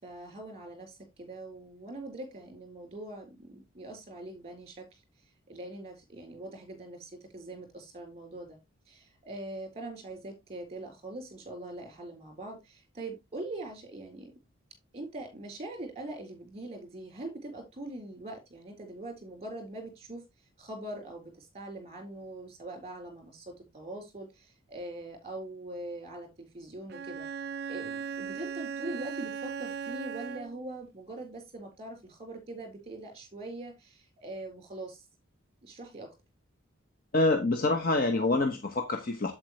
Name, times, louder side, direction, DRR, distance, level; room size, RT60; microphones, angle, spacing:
voice 1, 0.0-4.9 5.5-8.6 8.9-14.3 14.9-20.2 20.6-27.3 27.7-35.0 35.6-36.1, right 2 dB, 30° right, 3.9 m, -42 dB
Bowed string instrument, 26.9-30.7, right 6 dB, 50° right, 0.4 m, -38 dB
voice 2, 37.1-39.3, left 2 dB, 45° left, 1.0 m, -26 dB
8.3 x 7.9 x 3.1 m
head